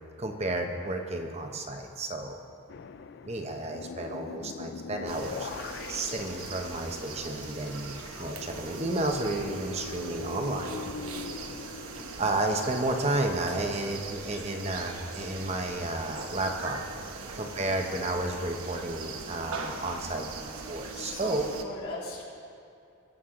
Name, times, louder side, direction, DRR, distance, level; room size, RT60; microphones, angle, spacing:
voice 1, 0.2-2.4 3.2-5.5 5.9-10.9 11.6-16.8 17.3-21.5, right 2 dB, 30° right, 3 dB, 0.9 m, -32 dB
sound 1, 2.7-12.8, left 5 dB, 50° left, 0.3 m, -42 dB
sound 2, 5.1-21.6, right 4 dB, 85° right, 1.0 m, -41 dB
voice 2, 11.1-11.5 17.3-17.6 20.9-22.2, left 2 dB, 80° left, -6 dB, 3.3 m, -41 dB
20.5 x 8.2 x 3.8 m, 2.6 s
head